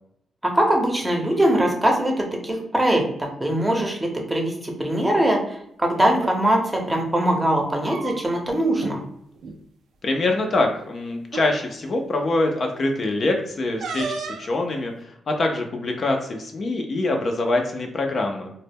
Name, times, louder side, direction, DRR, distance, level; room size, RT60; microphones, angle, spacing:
voice 1, 0.4-9.0, right 1 dB, 15° right, 1 dB, 0.6 m, -22 dB
sound 1, 6.1-6.4 7.6-8.5 8.8-9.0 9.3-9.6 10.5-10.6 11.3-11.5 13.8-14.5, right 4 dB, 80° right, 0.3 m, -33 dB
voice 2, 10.0-18.5, left 2 dB, 50° left, 3 dB, 0.4 m, -24 dB
2.0 x 2.0 x 3.3 m, 0.73 s
cardioid pair, 85°, 0 cm